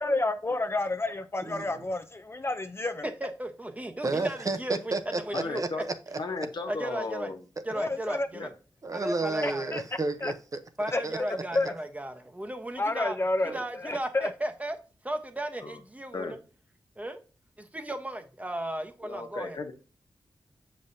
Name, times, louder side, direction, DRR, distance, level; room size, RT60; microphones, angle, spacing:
voice 1, 0.0-3.0 7.7-8.3 9.4-9.8 10.2-10.3 10.9-11.0 11.5-11.7 12.8-14.3, left 2 dB, 30° left, 0.6 m, -30 dB
voice 2, 3.0-4.9 5.3-5.8 6.7-7.3 7.6-8.5 8.9-9.6 10.8-13.2 13.5-14.8 15.0-16.4 17.0-17.2 17.6-19.7, right 1 dB, 15° right, 1.0 m, -35 dB
voice 3, 4.0-6.2 8.8-10.6 11.0-11.2 13.5-13.6, right 3 dB, 45° right, 0.8 m, -32 dB
voice 4, 5.3-5.8 6.2-7.4 8.3-8.5 15.6-15.8 16.1-16.3 19.0-19.7, left 3 dB, 65° left, 1.2 m, -35 dB
7.1 x 5.3 x 2.7 m
cardioid pair, 65°, 8 cm